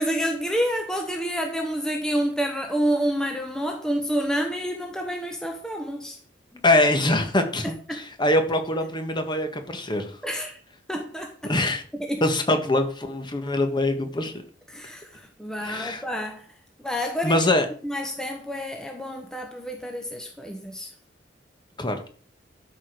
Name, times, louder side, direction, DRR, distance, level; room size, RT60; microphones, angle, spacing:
voice 1, 0.0-6.2 7.6-8.0 10.2-10.5 10.9-11.4 11.9-12.2 14.7-16.5 16.8-17.4 17.8-20.9, equal, 5° left, 1.1 m, -28 dB
voice 2, 6.6-10.2 11.4-11.8 12.2-14.3 15.6-16.0 17.2-17.7 21.8-22.1, left 1 dB, 25° left, 1.6 m, -23 dB
12.5 x 5.1 x 6.1 m
head